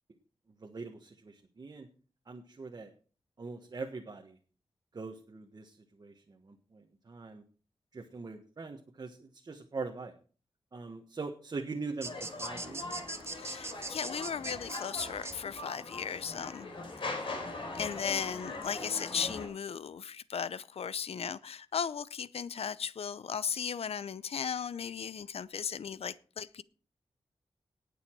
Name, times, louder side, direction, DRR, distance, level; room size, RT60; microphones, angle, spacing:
voice 1, 0.6-1.9 2.3-2.9 3.4-4.4 4.9-7.4 7.9-10.1 10.7-12.9, right 4 dB, 40° right, 1.4 m, -42 dB
sound 1, 12.0-19.5, left 3 dB, 55° left, 4.3 m, -41 dB
sound 2, 12.0-15.4, right 3 dB, 25° right, 1.0 m, -40 dB
voice 2, 13.3-16.7 17.7-26.6, left 7 dB, 75° left, 0.6 m, -36 dB
19.0 x 6.9 x 4.6 m
wide cardioid pair, 155°, 10 cm